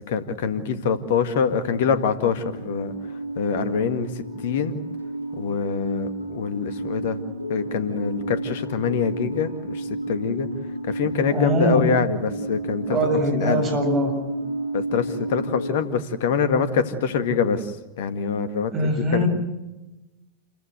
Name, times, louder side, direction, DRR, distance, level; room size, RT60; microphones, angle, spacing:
voice 1, 0.1-2.9 3.4-4.8 5.4-7.2 7.5-10.5 10.9-13.0 13.3-13.6 14.7-19.2, left 6 dB, 55° left, 10 dB, 1.9 m, -25 dB
sound 1, 2.3-15.7, right 1 dB, 85° left, 7.4 m, -32 dB
voice 2, 11.3-11.8 12.9-14.2 18.7-19.3, right 1 dB, 25° right, 3 dB, 7.4 m, -22 dB
28.0 x 15.0 x 8.0 m, 1.1 s
figure-of-eight pair, 90°, 0 cm